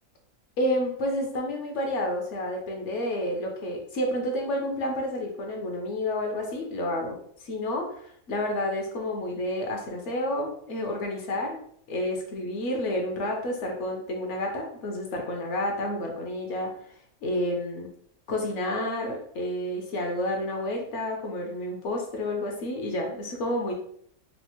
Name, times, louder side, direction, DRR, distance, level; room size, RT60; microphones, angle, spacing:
voice 1, 0.6-7.2 7.4-11.6 11.9-16.7 17.2-17.9 18.3-23.7, left 1 dB, 65° left, 1 dB, 0.9 m, -30 dB
4.1 x 2.0 x 2.9 m, 0.64 s
omnidirectional pair, 1.5 m